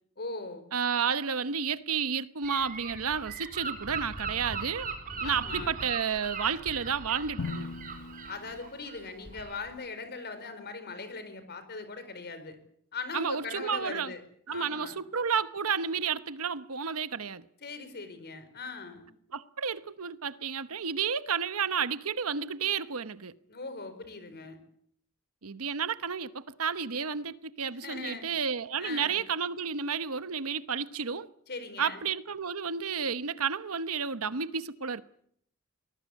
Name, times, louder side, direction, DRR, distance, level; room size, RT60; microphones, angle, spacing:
voice 1, 0.2-0.7 5.2-5.8 8.3-12.6 12.9-14.2 14.5-15.0 17.6-19.1 23.5-24.6 27.7-28.3 28.8-29.2 31.5-32.0, left 4 dB, 50° left, 4.5 m, -40 dB
voice 2, 0.7-4.9 5.2-7.7 13.1-14.1 14.5-17.4 19.3-23.3 25.4-31.3 31.8-35.0, right 6 dB, 70° right, 1.0 m, -31 dB
Gull seagull / Wind, 2.4-9.7, right 4 dB, 40° right, 4.8 m, -40 dB
Drum, 7.4-9.4, left 4 dB, 75° left, 0.9 m, -40 dB
24.0 x 20.0 x 8.4 m
head